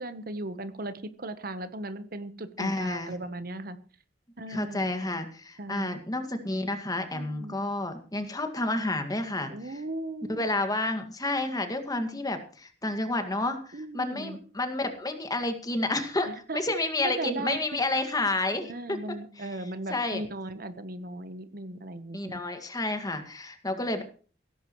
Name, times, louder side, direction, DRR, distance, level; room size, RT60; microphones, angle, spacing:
voice 1, 0.0-3.8 4.4-4.9 5.6-5.9 7.1-7.6 9.5-10.5 13.7-14.4 16.2-16.6 17.0-17.6 18.6-22.4, right 1 dB, 55° right, 11 dB, 1.1 m, -37 dB
voice 2, 2.6-3.1 4.5-9.8 10.3-19.0 19.4-19.5 19.9-20.2 22.1-24.0, left 2 dB, 20° left, 7 dB, 2.0 m, -30 dB
16.5 x 14.5 x 3.1 m, 0.39 s
head